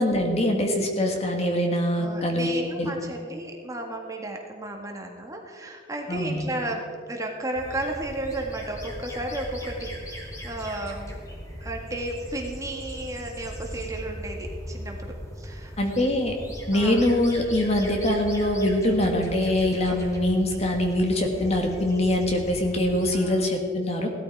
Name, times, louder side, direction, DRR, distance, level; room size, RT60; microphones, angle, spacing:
voice 1, 0.0-2.5 2.8-2.9 6.1-6.5 15.8-16.3 16.7-24.1, left 1 dB, 35° left, 3 dB, 1.7 m, -23 dB
voice 2, 2.0-11.2 11.6-15.7 16.7-17.1 19.8-20.0 23.1-23.4, right 1 dB, 20° right, 1 dB, 1.8 m, -33 dB
sound 1, 7.5-23.1, equal, 20° left, 2.6 m, -38 dB
17.0 x 13.0 x 4.7 m, 2.1 s
head